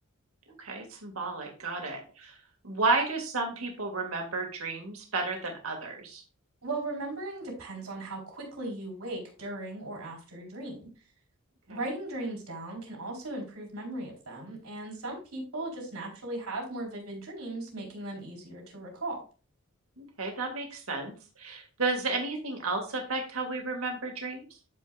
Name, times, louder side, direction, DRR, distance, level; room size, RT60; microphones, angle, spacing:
voice 1, 0.5-2.4 2.6-6.2 11.7-11.8 20.0-24.5, right 3 dB, 70° right, 2 dB, 2.3 m, -32 dB
voice 2, 6.6-10.9 11.7-19.2, right 2 dB, 90° right, -1 dB, 4.3 m, -37 dB
13.0 x 5.3 x 2.5 m, 0.36 s
head